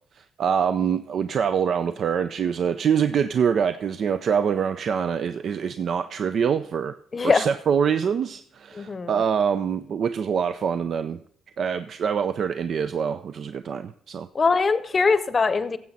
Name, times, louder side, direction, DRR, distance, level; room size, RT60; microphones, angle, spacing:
voice 1, 0.2-6.9 7.2-11.2 11.6-14.3, right 7 dB, 60° right, 11 dB, 0.4 m, -25 dB
voice 2, 7.1-7.5 8.7-9.1 14.3-15.8, left 4 dB, 35° left, 13 dB, 0.7 m, -21 dB
16.5 x 7.5 x 4.1 m, 0.62 s
cardioid pair, 90°, 0 cm